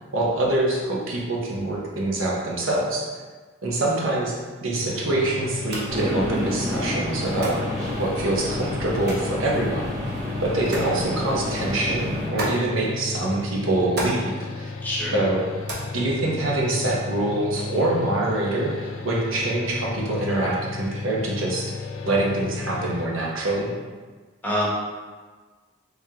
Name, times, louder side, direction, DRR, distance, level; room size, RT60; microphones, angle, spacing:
voice 1, 0.1-3.1 3.6-7.6 8.0-9.9 10.4-14.7 15.1-15.4 15.9-21.7 22.0-23.7, right 2 dB, 85° right, -3 dB, 0.8 m, -25 dB
sound 1, 4.7-23.1, left 4 dB, 85° left, 0.4 m, -34 dB
sound 2, 5.6-17.0, right 1 dB, 55° right, 0.8 m, -38 dB
sound 3, 5.9-12.3, left 1 dB, 15° right, 1.0 m, -30 dB
voice 2, 14.8-15.2 24.4-24.7, left 1 dB, 10° left, -8 dB, 0.9 m, -25 dB
3.6 x 3.4 x 2.8 m, 1.4 s
head